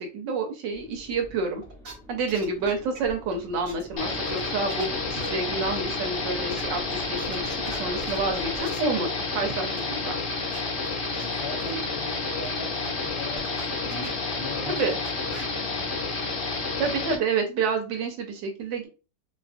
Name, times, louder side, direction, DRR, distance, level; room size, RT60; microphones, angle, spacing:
voice 1, 0.0-1.6 2.1-6.8 7.1-10.2 14.8-14.9 16.8-18.9, right 4 dB, 75° right, 1.2 m, -29 dB
sound 1, 0.7-8.6, equal, ahead, 0.8 m, -45 dB
sound 2, 1.6-1.9 2.3-3.3 3.7-3.8 4.1-4.9 5.2-5.3 5.7-5.8 6.5-6.6 6.9-8.8 9.8-9.9 10.1-10.2 10.5-10.6 10.8-10.9 11.1-11.2 11.7-11.8 12.4-12.5 12.8-13.6 13.9-14.3 14.6-14.8 15.0-15.4, right 4 dB, 50° right, 1.2 m, -42 dB
sound 3, 4.0-17.2, left 3 dB, 55° left, 1.0 m, -30 dB
voice 2, 11.1-12.8 13.2-14.8 15.3-16.5, left 2 dB, 75° left, 1.4 m, -39 dB
3.2 x 2.3 x 2.4 m
omnidirectional pair, 2.1 m